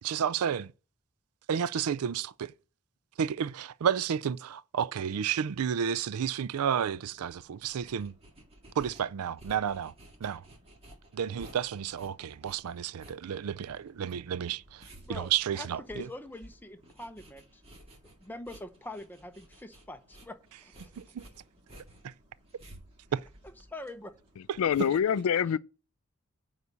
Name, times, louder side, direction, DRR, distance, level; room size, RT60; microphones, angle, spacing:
voice 1, 0.0-0.7 1.5-2.5 3.2-8.1 8.8-9.9 10.2-10.4 11.1-16.1 21.0-21.2 22.0-22.1 23.1-23.2, right 8 dB, 85° right, 0.4 m, -31 dB
sound 1, 6.4-25.0, right 1 dB, 25° right, 1.8 m, -55 dB
voice 2, 15.0-17.6 18.0-20.7 23.7-24.1, left 1 dB, 10° left, 0.8 m, -44 dB
voice 3, 24.4-25.6, left 8 dB, 75° left, 0.3 m, -26 dB
9.4 x 4.1 x 6.8 m
head